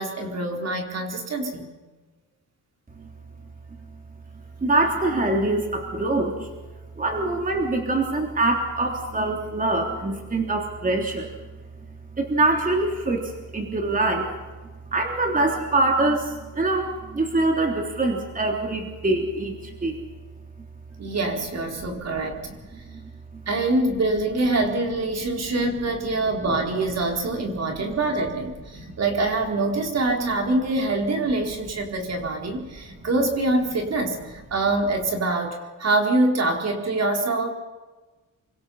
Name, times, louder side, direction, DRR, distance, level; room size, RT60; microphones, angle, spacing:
voice 1, 0.0-1.7 21.0-22.4 23.5-37.5, right 2 dB, 50° right, 2 dB, 4.2 m, -25 dB
voice 2, 4.6-6.5 7.0-11.3 12.2-14.3 14.9-20.0 22.5-22.6 22.9-23.1 28.7-28.9, right 2 dB, 25° right, 2 dB, 3.4 m, -24 dB
29.0 x 25.0 x 5.7 m, 1.2 s
cardioid pair, 130°, 33 cm